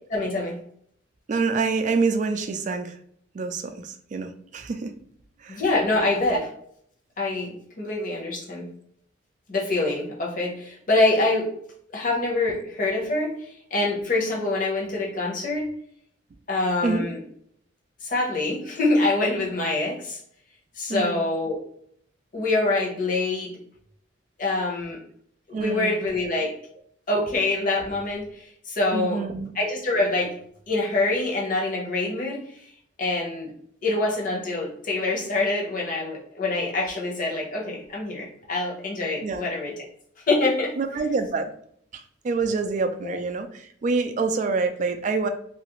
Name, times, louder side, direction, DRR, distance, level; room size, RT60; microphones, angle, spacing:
voice 1, 0.1-0.6 5.5-6.4 7.2-8.7 9.5-11.5 11.9-15.7 16.5-17.2 18.0-20.2 20.8-21.6 22.3-23.6 24.4-25.0 25.5-26.5 27.1-29.2 29.5-30.3 30.7-32.4 33.0-33.5 33.8-39.7 40.3-40.7 43.0-43.2, left 2 dB, 45° left, -2 dB, 0.8 m, -25 dB
voice 2, 1.3-3.0 3.3-4.9 5.4-5.6 16.8-17.1 20.9-21.2 25.5-26.0 28.9-29.5 39.2-39.4 40.8-41.5 41.9-45.3, right 4 dB, 40° right, 7 dB, 0.3 m, -26 dB
2.8 x 2.4 x 2.9 m, 0.66 s
head